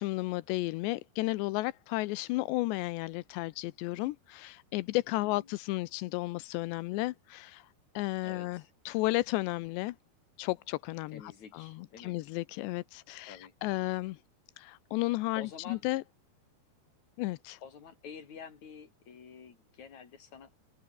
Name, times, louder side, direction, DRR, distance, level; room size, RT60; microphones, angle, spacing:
voice 1, 0.0-7.7 8.0-10.0 10.4-11.2 11.5-14.2 14.6-16.0 17.2-17.6, left 19 dB, 85° left, 3.0 m, -33 dB
voice 2, 5.1-5.5 8.2-8.7 11.1-12.2 13.3-13.5 15.3-15.8 17.6-20.6, left 6 dB, 45° left, 4.8 m, -49 dB
open air
omnidirectional pair, 4.9 m